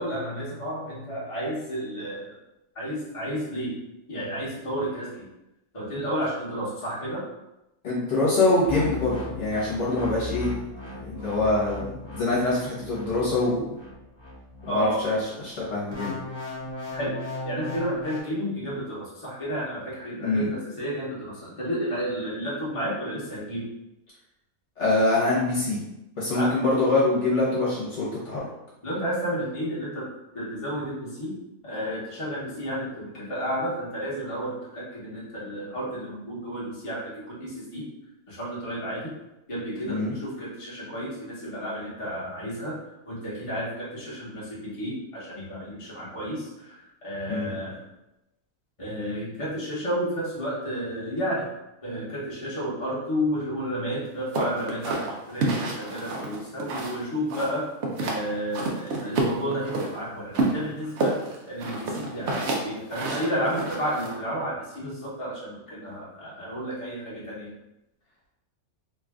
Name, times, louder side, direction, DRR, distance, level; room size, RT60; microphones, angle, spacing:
voice 1, 0.0-2.3 2.7-3.8 4.1-5.2 5.7-7.2 14.7-15.0 16.9-17.1 17.4-23.7 26.3-26.5 28.8-30.1 30.3-31.3 31.6-37.9 38.3-39.1 39.5-42.8 43.1-46.8 47.0-47.8 48.8-51.4 51.8-57.7 58.0-61.2 61.5-67.5, equal, 25° left, -7 dB, 1.1 m, -31 dB
voice 2, 7.8-10.5 11.0-13.7 14.6-16.2 20.2-20.5 24.8-25.8 26.2-28.4 39.8-40.1 47.3-47.5, left 2 dB, 55° left, -7 dB, 1.3 m, -24 dB
sound 1, 8.6-15.2 15.9-18.2, left 1 dB, 30° right, 0.5 m, -37 dB
sound 2, 54.3-57.0 57.3-58.2 58.5-59.9 60.3-64.1, right 2 dB, 60° right, 0.9 m, -28 dB
3.1 x 2.5 x 3.5 m, 0.92 s
omnidirectional pair, 1.5 m